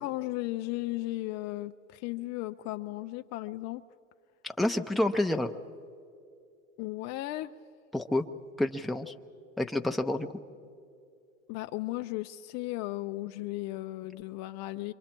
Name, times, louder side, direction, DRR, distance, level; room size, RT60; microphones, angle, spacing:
voice 1, 0.0-3.8 6.8-7.5 11.5-14.9, left 17 dB, 45° left, 8 dB, 0.6 m, -35 dB
voice 2, 4.4-5.5 7.9-8.2 8.6-9.1 9.6-10.3, left 1 dB, ahead, 3 dB, 0.8 m, -28 dB
27.0 x 24.5 x 4.5 m, 2.4 s
hypercardioid pair, 100°, 39 cm